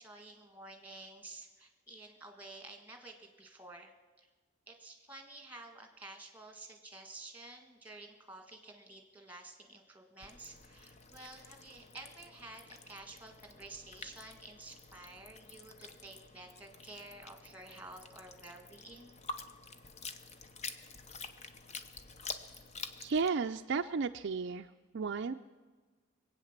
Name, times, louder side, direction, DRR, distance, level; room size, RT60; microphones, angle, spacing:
voice 1, 0.0-4.3 4.7-19.1, right 2 dB, 10° right, 5 dB, 1.7 m, -51 dB
sound 1, 10.2-23.3, left 4 dB, 30° left, 0.8 m, -48 dB
voice 2, 23.0-25.3, right 5 dB, 55° right, 7 dB, 0.4 m, -34 dB
21.5 x 8.6 x 7.3 m, 1.4 s
head